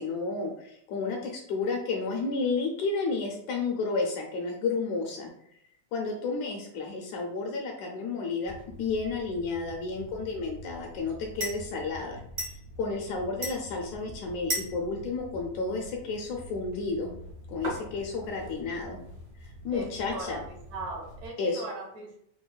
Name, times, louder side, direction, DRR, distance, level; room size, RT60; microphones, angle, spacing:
voice 1, 0.0-5.3 5.9-8.5 8.8-12.2 12.5-17.1 17.5-19.0 19.4-20.4 21.4-21.6, left 4 dB, 80° left, 1 dB, 1.8 m, -31 dB
sound 1, 8.5-21.3, equal, 65° right, 0.9 m, -41 dB
voice 2, 19.7-20.4 20.7-22.2, right 2 dB, 80° right, -4 dB, 3.0 m, -39 dB
6.1 x 2.2 x 2.2 m, 0.70 s
omnidirectional pair, 3.6 m